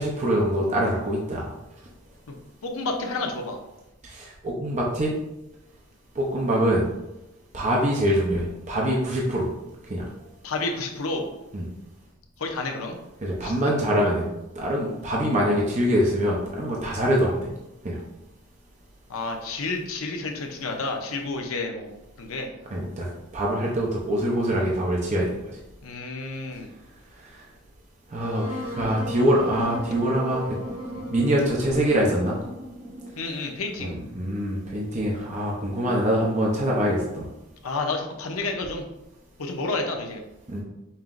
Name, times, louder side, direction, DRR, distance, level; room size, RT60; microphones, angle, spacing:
voice 1, 0.0-1.5 4.0-5.1 6.1-6.8 7.5-9.5 9.9-10.1 11.5-11.7 13.2-14.3 14.6-17.5 17.8-18.0 22.7-25.6 27.2-27.4 28.1-30.4 31.1-32.4 33.8-37.3 40.5-40.6, equal, 35° right, -3 dB, 0.6 m, -24 dB
voice 2, 2.6-3.6 10.4-11.3 12.4-13.0 13.4-13.5 19.1-21.9 22.2-22.6 25.8-26.7 33.2-34.0 37.6-38.8 39.4-40.2, left 3 dB, 75° left, 3 dB, 0.7 m, -30 dB
Wind instrument woodwind instrument, 28.2-33.3, equal, 70° right, 1.2 m, -35 dB
5.4 x 2.9 x 2.5 m, 0.94 s
head